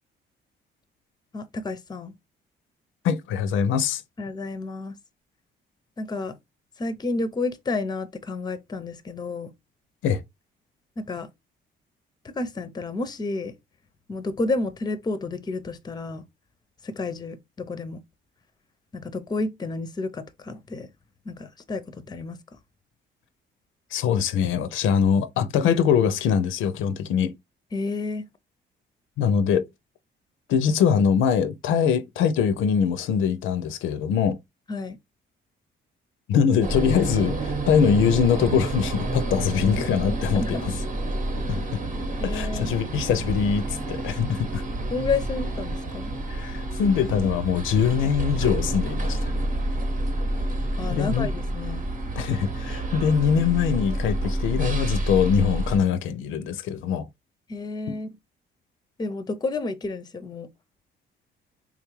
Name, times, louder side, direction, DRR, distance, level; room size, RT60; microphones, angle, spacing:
voice 1, 1.3-2.1 4.2-4.9 6.0-6.4 6.8-9.5 11.0-11.3 12.2-13.5 14.1-16.2 16.8-18.0 18.9-20.9 21.3-22.4 27.7-28.3 34.7-35.0 40.3-40.6 42.2-42.7 44.9-46.1 50.8-51.9 57.5-58.2 59.0-60.5, left 3 dB, 20° left, 0.5 m, -30 dB
voice 2, 3.0-4.0 10.0-10.2 23.9-27.3 29.2-29.7 30.5-34.4 36.3-40.8 41.5-41.8 42.2-44.6 46.3-49.3 50.9-51.3 52.2-57.1 57.9-58.0, left 7 dB, 80° left, 0.4 m, -23 dB
sound 1, 36.6-55.8, right 1 dB, 40° right, 0.8 m, -29 dB
3.6 x 2.3 x 3.0 m
cardioid pair, 90°, 20 cm